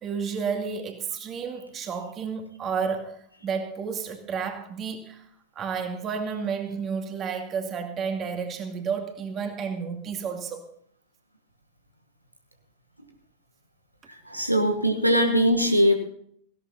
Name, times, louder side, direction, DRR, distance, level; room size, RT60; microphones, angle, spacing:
voice 1, 0.0-5.3 5.6-10.6, right 6 dB, 30° right, 4 dB, 2.3 m, -31 dB
voice 2, 14.3-15.9, equal, 90° right, 6 dB, 1.3 m, -21 dB
18.0 x 16.5 x 2.8 m, 0.66 s
figure-of-eight pair, 90°, 0 cm